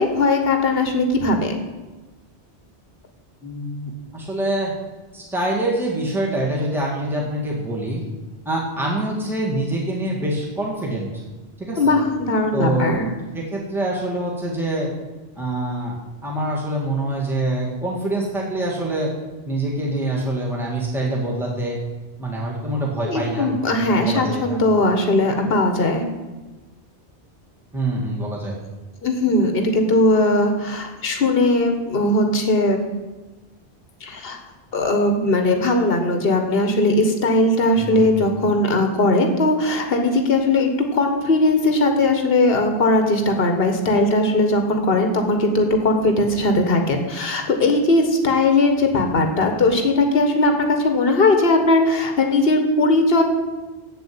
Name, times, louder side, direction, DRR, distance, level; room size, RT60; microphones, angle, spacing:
voice 1, 0.0-1.5 11.8-13.1 23.1-26.0 29.0-32.8 34.0-34.4 34.7-53.2, left 2 dB, 60° left, 5 dB, 1.6 m, -19 dB
voice 2, 3.4-4.7 5.1-8.0 8.5-11.1 11.6-11.9 12.5-13.0 13.3-14.9 15.4-16.0 16.2-19.1 19.5-21.8 22.2-23.5 23.8-24.6 27.7-28.6 37.8-38.1, right 1 dB, ahead, -3 dB, 2.1 m, -25 dB
8.0 x 7.9 x 8.8 m, 1.2 s
omnidirectional pair, 1.1 m